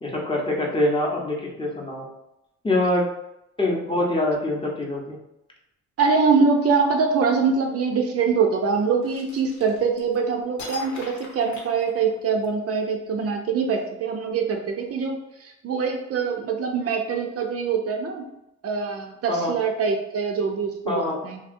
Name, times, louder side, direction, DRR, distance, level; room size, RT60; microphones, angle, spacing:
voice 1, 0.0-2.1 2.6-3.0 3.6-5.2 19.3-19.5 20.9-21.2, left 1 dB, 15° left, -2 dB, 0.7 m, -24 dB
voice 2, 6.0-18.3 18.6-21.4, right 5 dB, 50° right, 3 dB, 0.5 m, -24 dB
sound 1, 9.0-10.2 10.6-12.5, left 3 dB, 70° left, 0.9 m, -40 dB
2.8 x 2.7 x 2.5 m, 0.86 s
cardioid pair, 90°, 30 cm